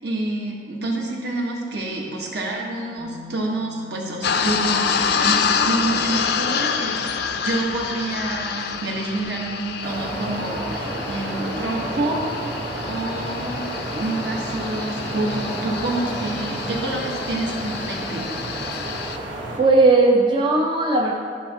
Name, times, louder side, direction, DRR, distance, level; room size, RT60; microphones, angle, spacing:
voice 1, 0.0-7.0 7.3-12.4 12.8-13.7 13.9-18.3, right 2 dB, 60° right, -2 dB, 1.4 m, -28 dB
Bass guitar, 3.0-9.2, left 6 dB, 45° right, 1.2 m, -47 dB
sound 1, 4.2-19.2, left 6 dB, 60° left, 0.4 m, -27 dB
sound 2, 9.8-19.6, right 1 dB, 85° right, 1.3 m, -31 dB
voice 2, 19.6-21.1, right 3 dB, 25° right, -2 dB, 0.5 m, -17 dB
12.5 x 5.7 x 2.9 m, 2.2 s
head